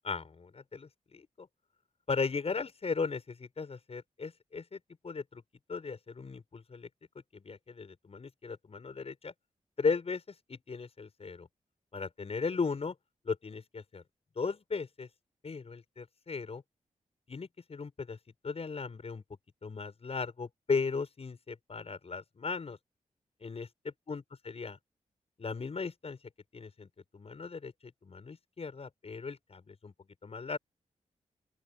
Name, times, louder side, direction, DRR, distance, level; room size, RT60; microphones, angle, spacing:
voice 1, 0.0-1.5 2.1-4.8 5.0-5.4 5.7-6.9 7.3-9.3 9.8-10.2 10.5-11.5 11.9-12.9 13.2-14.0 14.4-15.1 15.4-16.6 17.3-18.2 18.4-19.2 19.6-22.8 23.4-24.8 25.4-26.2 26.5-26.9 27.1-27.7 28.0-29.9 30.2-30.6, left 4 dB, 50° left, 6.0 m, -36 dB
open air
cardioid pair, 75°, 13 cm